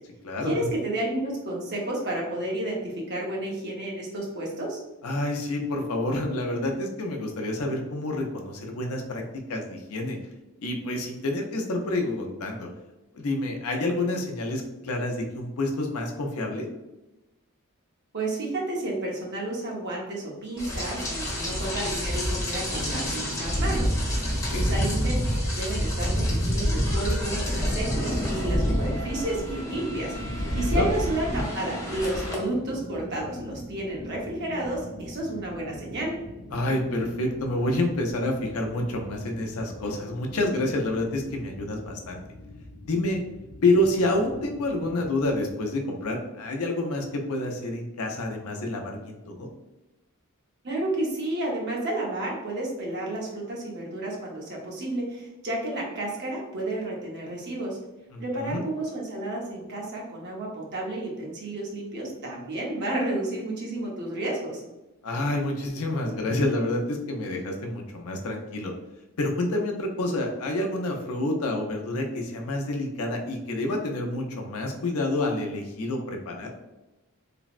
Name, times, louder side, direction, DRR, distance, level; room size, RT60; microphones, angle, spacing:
voice 1, 0.4-4.8 18.1-36.1 50.6-57.8 58.2-64.6, right 1 dB, 50° right, -2 dB, 0.8 m, -31 dB
voice 2, 5.0-9.2 9.5-10.2 10.6-12.7 13.1-16.7 24.5-24.7 30.2-30.9 36.5-42.2 42.9-43.2 43.6-49.5 58.1-58.6 65.0-68.7 69.2-76.5, left 1 dB, 90° left, 2 dB, 0.5 m, -28 dB
Rain, 20.6-32.4, equal, 15° left, 0.5 m, -27 dB
sound 1, 28.3-45.5, left 1 dB, 70° right, 1.3 m, -43 dB
3.3 x 2.0 x 2.4 m, 1.0 s
head